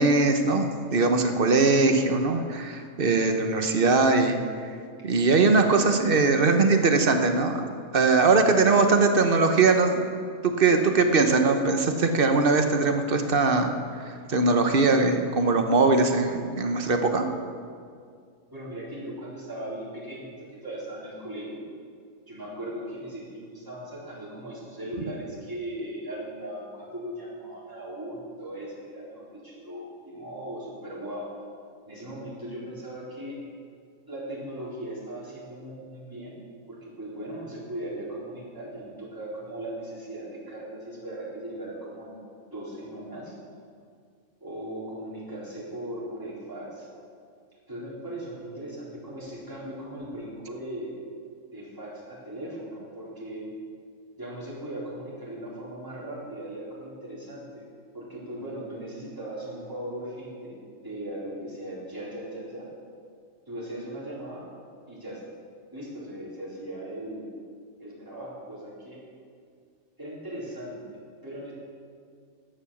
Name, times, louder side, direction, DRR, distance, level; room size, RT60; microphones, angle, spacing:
voice 1, 0.0-4.4 4.6-4.7 5.0-7.7 7.9-10.1 10.4-14.0 14.3-17.2, right 3 dB, 45° right, 6 dB, 1.1 m, -21 dB
voice 2, 18.5-20.3 20.6-21.6 22.3-31.3 31.9-33.4 34.1-36.4 36.7-42.2 42.5-43.3 44.4-46.9 47.7-51.0 51.5-53.5 54.2-57.6 57.9-60.6 60.8-62.7 63.5-64.5 64.9-65.2 65.7-67.3 67.8-69.0 70.0-71.5, right 1 dB, 15° right, -8 dB, 4.2 m, -38 dB
12.0 x 9.2 x 7.1 m, 2.2 s
omnidirectional pair, 1.4 m